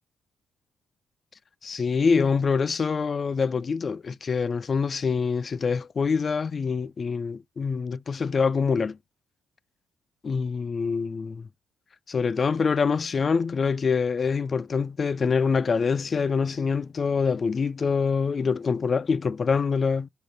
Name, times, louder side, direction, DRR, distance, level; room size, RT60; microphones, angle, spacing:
voice 1, 1.6-9.0 10.2-11.5 12.1-20.1, left 5 dB, 40° left, 0.3 m, -25 dB
6.3 x 3.6 x 5.3 m
cardioid pair, 85°, 0 cm